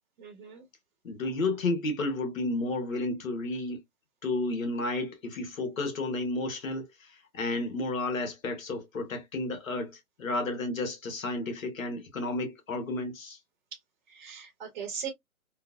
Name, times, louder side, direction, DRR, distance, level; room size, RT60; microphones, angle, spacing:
voice 1, 0.2-0.6 13.7-13.8 14.1-15.1, right 7 dB, 30° right, 0.8 m, -39 dB
voice 2, 1.0-3.8 4.2-9.9 10.2-13.4, left 2 dB, 65° left, 1.1 m, -32 dB
3.0 x 2.1 x 2.3 m
hypercardioid pair, 145°, 43 cm